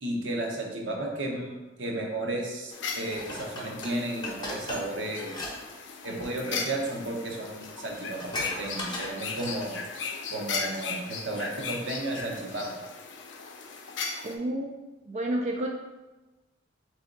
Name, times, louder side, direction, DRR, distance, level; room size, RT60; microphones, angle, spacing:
voice 1, 0.0-5.3 6.0-8.3 8.6-9.7 10.3-12.7, right 1 dB, 80° right, 0 dB, 0.8 m, -33 dB
sound 1, 2.7-14.3, left 4 dB, 75° left, 0.5 m, -38 dB
Dishes pots and pans, 3.1-5.6 5.8-6.1 6.9-7.0 7.3-7.4 7.6-9.9 10.3-10.4, left 2 dB, 25° left, 0.8 m, -37 dB
voice 2, 14.2-14.7 15.1-15.7, right 1 dB, 40° right, 1 dB, 0.3 m, -30 dB
3.4 x 3.4 x 3.8 m, 1.1 s
head